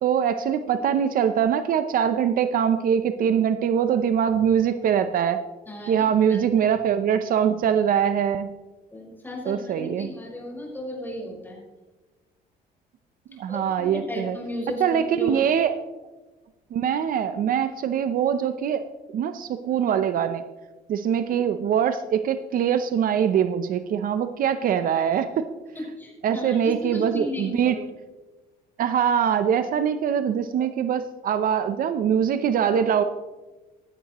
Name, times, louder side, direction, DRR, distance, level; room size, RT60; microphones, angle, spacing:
voice 1, 0.0-5.4 5.9-8.5 9.5-10.1 13.3-14.4 14.8-15.7 16.7-18.8 19.1-20.4 20.9-25.5 26.2-27.8 28.8-33.0, right 8 dB, 55° right, 10 dB, 0.7 m, -23 dB
voice 2, 5.7-6.7 8.9-11.6 13.3-15.4 25.7-27.8, left 1 dB, 10° left, -3 dB, 5.0 m, -35 dB
16.0 x 12.0 x 3.0 m, 1.2 s
cardioid pair, 110°, 17 cm